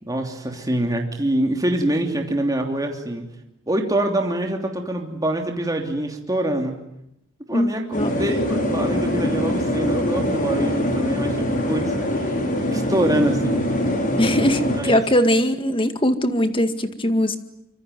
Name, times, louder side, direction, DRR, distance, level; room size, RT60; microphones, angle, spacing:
voice 1, 0.0-3.3 3.7-6.7 7.5-11.9 12.7-13.6 14.8-15.0, right 1 dB, 20° right, 2 dB, 3.0 m, -25 dB
voice 2, 7.5-8.1 14.2-17.4, equal, 25° left, 9 dB, 2.0 m, -21 dB
sound 1, 7.9-14.8, left 1 dB, 40° left, 6.5 m, -23 dB
25.5 x 24.5 x 9.4 m, 0.83 s
head